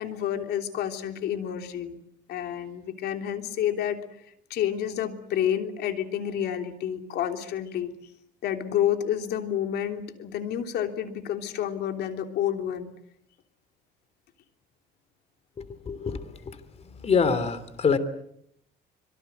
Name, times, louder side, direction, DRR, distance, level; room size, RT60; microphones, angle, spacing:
voice 1, 0.0-2.0 2.3-4.0 4.5-7.9 8.4-12.9, left 10 dB, 75° left, 6 dB, 3.2 m, -29 dB
voice 2, 15.6-16.6 16.8-18.0, left 5 dB, 40° left, 14 dB, 3.0 m, -26 dB
25.5 x 23.5 x 8.1 m, 0.73 s
cardioid pair, 110°, 17 cm